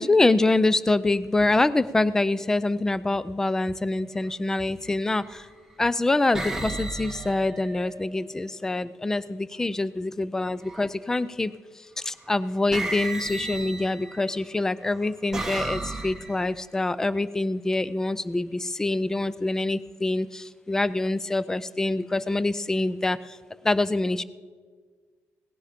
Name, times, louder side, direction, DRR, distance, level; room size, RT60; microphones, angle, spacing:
voice 1, 0.0-5.5 5.8-23.4 23.6-24.2, left 2 dB, 10° left, 17 dB, 0.4 m, -25 dB
sound 1, 4.1-4.4 5.2-5.7 6.3-8.4 10.6-11.1 12.2-12.3 12.7-14.3 14.9-16.6, right 2 dB, 10° right, 1.1 m, -34 dB
17.5 x 10.5 x 5.0 m, 1.6 s
cardioid pair, 150°, 5 cm